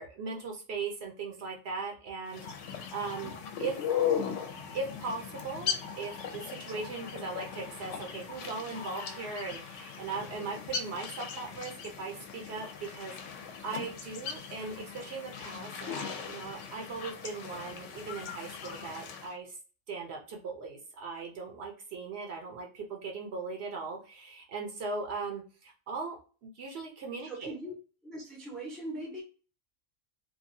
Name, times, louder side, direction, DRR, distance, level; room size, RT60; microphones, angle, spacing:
voice 1, 0.0-3.8 4.7-19.6 19.9-26.2 26.4-27.5, right 4 dB, 60° right, 1 dB, 0.9 m, -39 dB
sound 1, 2.3-19.3, left 8 dB, 75° left, 0.9 m, -38 dB
voice 2, 27.2-27.7 28.0-29.2, right 1 dB, ahead, 0 dB, 0.6 m, -40 dB
2.8 x 2.3 x 2.6 m, 0.37 s
omnidirectional pair, 1.3 m